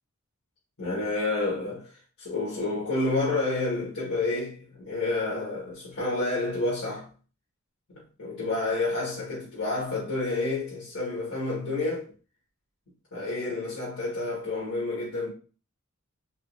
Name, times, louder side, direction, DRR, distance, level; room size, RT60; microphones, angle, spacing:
voice 1, 0.8-1.9 2.2-7.1 7.9-12.1 13.1-15.3, left 2 dB, 65° left, 1.9 m, -29 dB
4.2 x 3.2 x 2.8 m
head